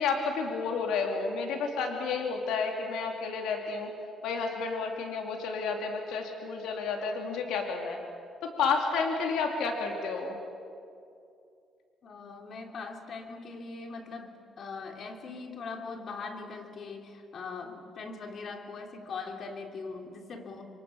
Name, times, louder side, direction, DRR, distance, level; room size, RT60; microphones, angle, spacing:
voice 1, 0.0-3.9 4.2-8.0 8.4-10.4, left 4 dB, 90° left, 2 dB, 2.8 m, -31 dB
voice 2, 12.0-20.6, left 4 dB, 60° left, 3 dB, 3.3 m, -41 dB
28.0 x 23.5 x 7.0 m, 2.5 s
cardioid pair, 90°, 0 cm